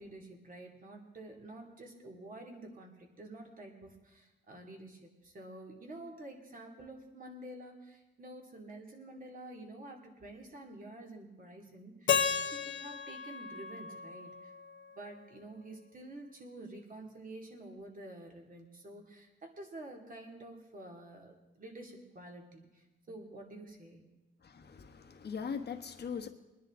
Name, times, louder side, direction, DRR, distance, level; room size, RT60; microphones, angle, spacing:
voice 1, 0.0-12.2 12.5-14.5 14.9-24.0, right 1 dB, 45° right, 1 dB, 2.5 m, -49 dB
Keyboard (musical), 12.1-15.0, left 7 dB, 70° left, 0.8 m, -34 dB
voice 2, 24.4-26.3, left 6 dB, 55° left, 6 dB, 1.2 m, -40 dB
22.5 x 10.0 x 3.7 m, 1.1 s
wide cardioid pair, 115°, 20 cm